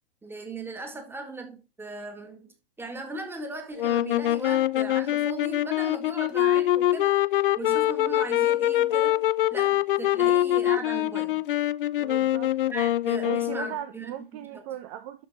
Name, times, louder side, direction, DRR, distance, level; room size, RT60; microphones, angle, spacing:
voice 1, 0.2-7.2 7.6-11.4 12.7-14.6, right 2 dB, 5° right, 2.0 m, -38 dB
sound 1, 3.8-13.8, left 13 dB, 60° left, 0.5 m, -24 dB
voice 2, 12.0-12.5 13.2-15.3, right 11 dB, 35° right, 0.9 m, -38 dB
12.0 x 5.2 x 4.1 m
figure-of-eight pair, 115°, 31 cm